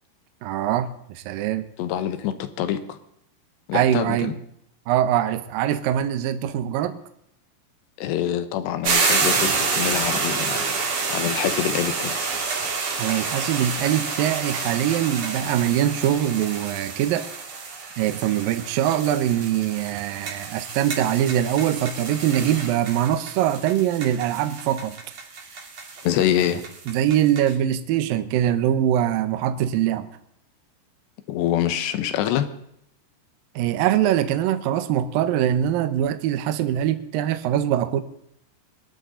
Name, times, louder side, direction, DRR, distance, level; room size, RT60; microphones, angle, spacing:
voice 1, 0.4-1.7 3.7-4.3 4.9-7.0 13.0-17.3 18.0-25.0 26.9-30.1 33.6-38.0, right 11 dB, 75° right, 10 dB, 2.3 m, -23 dB
voice 2, 1.8-3.0 3.7-4.3 8.0-12.2 26.0-26.6 31.3-32.5, left 11 dB, 80° left, 11 dB, 3.3 m, -25 dB
sound 1, 8.8-27.5, right 4 dB, 45° right, 3.2 m, -28 dB
22.5 x 12.5 x 3.9 m, 0.73 s
omnidirectional pair, 4.9 m